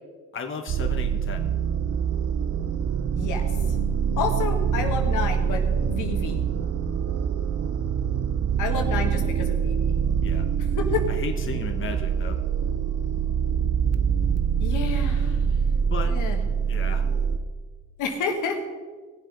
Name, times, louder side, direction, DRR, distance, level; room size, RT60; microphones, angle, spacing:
voice 1, 0.3-1.5 10.2-10.5 11.1-12.4 15.9-16.1 16.7-17.0, left 5 dB, 40° left, 4 dB, 1.4 m, -34 dB
sound 1, 0.7-17.4, right 7 dB, 55° right, 0.9 m, -25 dB
voice 2, 3.1-3.5 4.2-6.5 8.6-9.8 10.6-11.1 14.6-15.4 16.0-16.4 18.0-18.7, left 5 dB, 85° left, 3 dB, 1.9 m, -30 dB
17.5 x 7.4 x 5.5 m, 1.5 s
cardioid pair, 90°, 30 cm